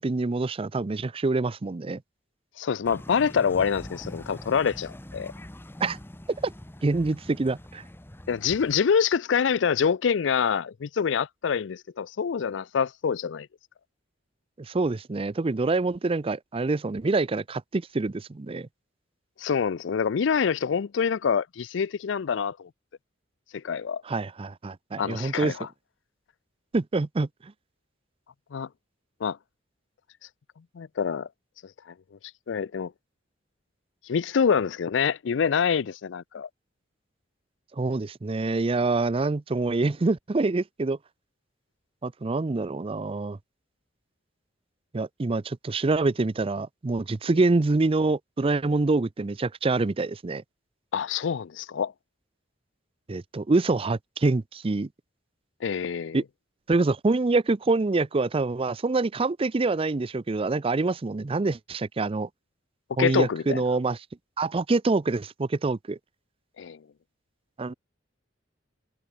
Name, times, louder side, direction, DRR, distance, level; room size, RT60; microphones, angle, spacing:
voice 1, 0.0-2.0 5.8-6.0 6.4-6.5 6.8-7.8 14.6-18.7 24.0-25.5 26.7-27.5 37.7-41.0 42.0-43.4 44.9-50.4 53.1-54.9 56.1-56.2 56.7-62.3 63.0-64.0 64.4-66.0 67.6-67.7, right 3 dB, 30° right, 0.5 m, -26 dB
voice 2, 2.6-5.3 8.3-13.5 19.4-22.7 23.5-24.0 25.0-25.7 28.5-28.7 29.2-29.4 30.8-31.3 32.5-32.9 34.1-36.5 50.9-51.9 55.6-56.2 63.0-63.6 66.6-66.8, left 6 dB, 75° left, 0.4 m, -26 dB
sound 1, 2.9-8.7, left 1 dB, 10° left, 0.9 m, -43 dB
head